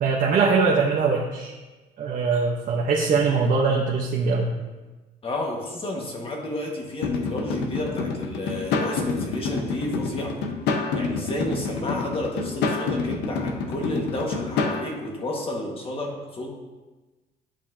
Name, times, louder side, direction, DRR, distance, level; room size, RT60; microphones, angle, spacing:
voice 1, 0.0-1.5 2.0-4.5, right 4 dB, 50° right, -1 dB, 0.9 m, -22 dB
voice 2, 5.2-10.4 10.9-16.5, left 1 dB, 35° left, 0 dB, 1.6 m, -31 dB
sound 1, 7.0-14.8, left 4 dB, 85° left, 0.8 m, -28 dB
10.5 x 5.5 x 2.7 m, 1.2 s
cardioid pair, 110°, 17 cm